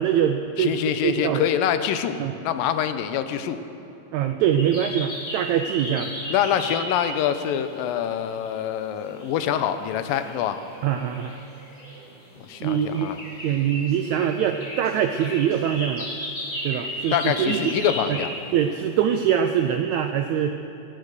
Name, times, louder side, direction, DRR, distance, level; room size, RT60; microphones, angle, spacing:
voice 1, 0.0-1.4 2.2-2.3 4.1-6.1 10.8-11.4 12.6-13.1 13.4-16.1 16.6-17.6 18.1-18.2 18.5-20.5, right 9 dB, 85° right, 7 dB, 1.6 m, -23 dB
voice 2, 0.6-2.2 2.4-3.6 6.3-10.6 12.5-13.2 17.1-18.3, left 9 dB, 85° left, 10 dB, 2.4 m, -25 dB
sound 1, 4.6-7.9 8.2-18.7 19.0-19.4, equal, 30° left, 4.7 m, -35 dB
23.0 x 8.4 x 6.5 m, 3.0 s
omnidirectional pair, 3.9 m